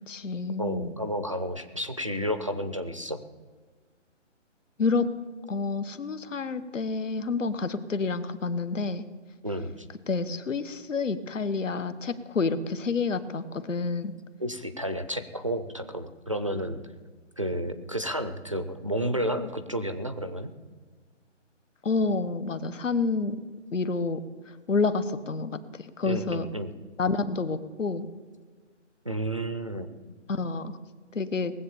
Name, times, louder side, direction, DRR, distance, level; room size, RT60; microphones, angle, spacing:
voice 1, 0.1-0.9 4.8-5.1 5.5-9.1 10.1-14.1 21.8-23.4 23.7-24.2 24.5-26.5 27.0-28.1 30.3-30.8 31.1-31.5, left 4 dB, 85° left, 12 dB, 1.3 m, -29 dB
voice 2, 0.6-3.2 9.4-9.9 14.4-16.8 17.4-20.5 26.0-26.7 29.1-29.9, equal, 25° right, 8 dB, 0.4 m, -31 dB
19.5 x 7.7 x 7.0 m, 1.4 s
hypercardioid pair, 165°, 37 cm